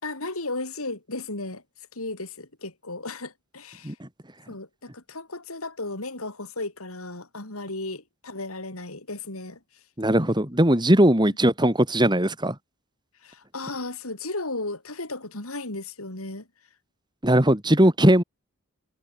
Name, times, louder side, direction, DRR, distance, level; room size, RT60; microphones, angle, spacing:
voice 1, 0.0-1.6 1.9-4.0 4.5-9.6 13.2-16.5, left 2 dB, 75° left, 4.9 m, -35 dB
voice 2, 10.0-12.5 17.2-18.2, right 1 dB, 20° right, 3.0 m, -19 dB
head